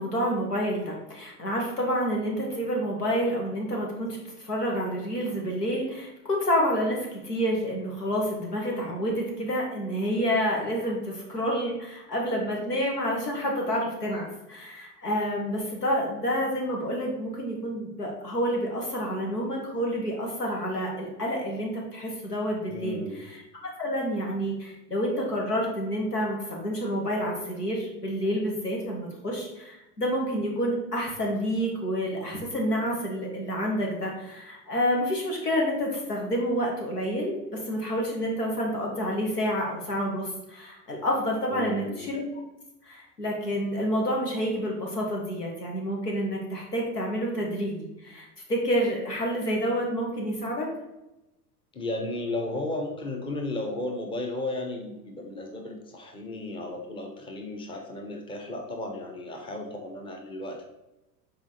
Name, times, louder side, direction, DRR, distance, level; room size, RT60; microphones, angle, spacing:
voice 1, 0.0-23.4 23.8-42.2 42.9-50.7, equal, 80° left, -1 dB, 1.8 m, -29 dB
voice 2, 22.7-23.2 41.5-42.1 51.7-60.6, left 2 dB, 10° left, 2 dB, 0.9 m, -34 dB
5.9 x 4.2 x 4.2 m, 0.97 s
figure-of-eight pair, 85°, 47 cm